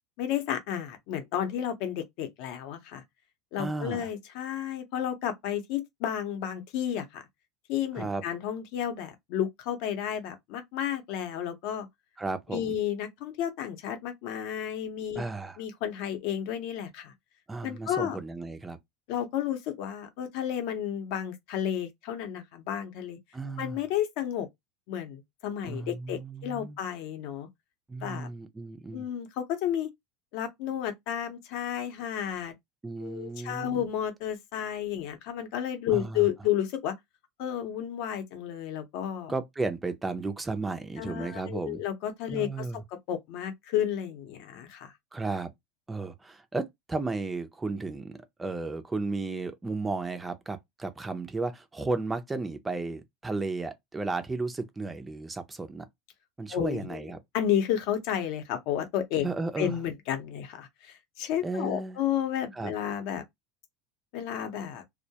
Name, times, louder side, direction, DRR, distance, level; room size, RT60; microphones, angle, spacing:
voice 1, 0.2-3.0 3.5-7.2 7.7-11.9 12.5-15.2 15.6-17.1 17.6-18.2 19.1-23.2 23.6-24.5 24.9-27.5 28.0-28.3 28.9-29.9 30.3-32.5 33.0-36.9 37.4-39.3 41.0-42.6 43.1-44.9 56.5-57.0 57.3-59.3 59.6-63.2 64.1-64.8, left 10 dB, 55° left, 0.7 m, -32 dB
voice 2, 3.6-4.1 8.0-8.2 12.2-12.7 15.2-15.6 17.5-18.8 23.3-23.8 25.7-26.8 27.9-29.1 32.8-33.9 35.9-36.3 39.3-41.8 42.3-42.8 45.1-45.5 45.9-55.9 56.4-57.2 59.2-59.8 61.4-62.0 62.5-62.7, right 3 dB, 10° right, 0.4 m, -34 dB
2.2 x 2.1 x 2.8 m
supercardioid pair, 155°, 0 cm